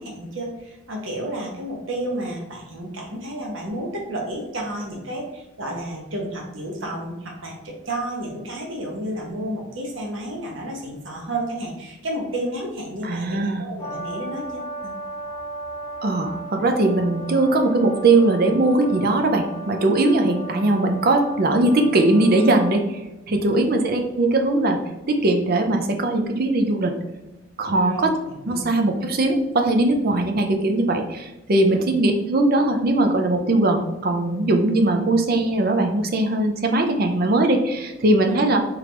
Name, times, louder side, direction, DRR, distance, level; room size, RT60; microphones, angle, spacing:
voice 1, 0.0-14.9 23.5-23.7 27.8-28.1 28.5-28.7 31.7-31.8 38.2-38.4, right 1 dB, 65° right, 0 dB, 0.9 m, -31 dB
voice 2, 13.0-13.6 16.0-23.0 23.3-27.0 27.6-28.1 28.5-38.6, right 2 dB, 45° right, 4 dB, 0.5 m, -20 dB
Brass instrument, 13.8-22.8, right 2 dB, 20° left, 0.9 m, -35 dB
3.7 x 3.4 x 3.2 m, 0.98 s
head